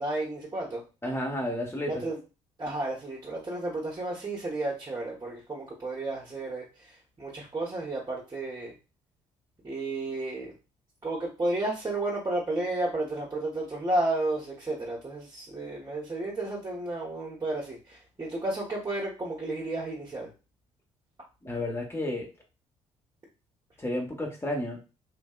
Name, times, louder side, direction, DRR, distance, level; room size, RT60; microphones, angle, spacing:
voice 1, 0.0-0.8 1.9-2.2 2.6-8.7 9.6-10.5 11.0-20.3, right 2 dB, 20° right, -4 dB, 1.0 m, -32 dB
voice 2, 1.0-2.0 21.4-22.3 23.8-24.8, left 1 dB, 15° left, 0 dB, 1.2 m, -31 dB
3.3 x 2.6 x 2.3 m, 0.31 s
figure-of-eight pair, 50°, 16 cm